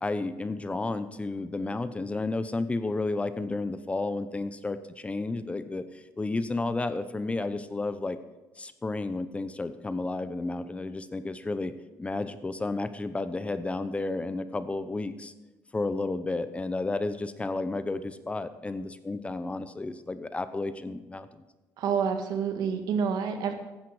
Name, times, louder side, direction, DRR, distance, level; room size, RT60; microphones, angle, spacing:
voice 1, 0.0-8.2 8.6-11.7 12.0-15.3 15.7-21.3, left 2 dB, 20° left, 12 dB, 0.8 m, -32 dB
voice 2, 21.8-23.5, right 6 dB, 75° right, 6 dB, 1.8 m, -28 dB
14.5 x 10.5 x 4.9 m, 1.1 s
cardioid pair, 100°, 7 cm